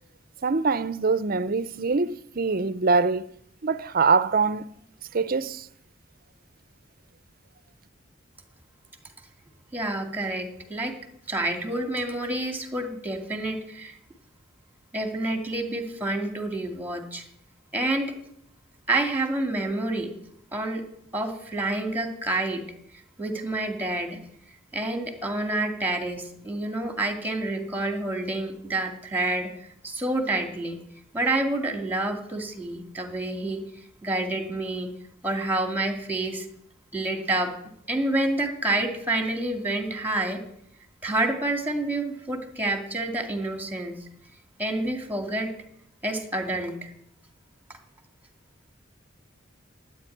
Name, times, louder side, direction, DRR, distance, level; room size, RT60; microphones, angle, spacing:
voice 1, 0.4-3.3 3.6-4.7 5.1-5.7, right 4 dB, 50° right, 0.6 m, -24 dB
voice 2, 9.7-10.9 11.3-13.9 14.9-17.2 17.7-18.1 18.9-20.1 20.5-20.8 21.1-22.6 23.2-24.2 24.7-30.8 31.1-33.6 34.0-34.9 35.2-36.5 36.9-37.5 37.9-40.4 41.0-44.0 44.6-45.5 46.0-46.9, right 2 dB, 10° right, 2.3 m, -28 dB
14.0 x 8.8 x 9.9 m
head